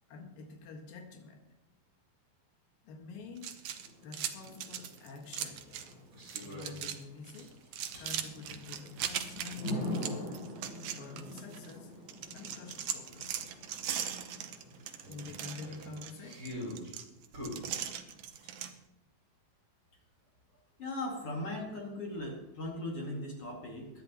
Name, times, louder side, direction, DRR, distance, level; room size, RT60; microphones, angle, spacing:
voice 1, 0.1-1.5 2.8-3.6 4.0-5.7 6.4-7.6 8.0-10.3 10.8-12.0 12.3-13.5 14.1-14.2 15.1-16.5, left 4 dB, 75° left, 2 dB, 3.3 m, -48 dB
sound 1, 3.4-5.9 6.2-7.0 7.3-11.7 12.1-18.7, right 9 dB, 75° right, 1.5 m, -39 dB
Thunder / Rain, 3.7-16.5, left 1 dB, 25° left, 5.7 m, -45 dB
sound 2, 6.1-6.8 7.3-8.1 9.6-9.7 12.4-12.5 12.7-12.8 13.3-13.4 15.0-16.9 17.3-18.8, left 1 dB, 30° right, 5.5 m, -44 dB
voice 2, 20.8-23.9, left 1 dB, 45° left, -1 dB, 2.8 m, -38 dB
23.0 x 11.0 x 3.0 m, 0.97 s
omnidirectional pair, 4.1 m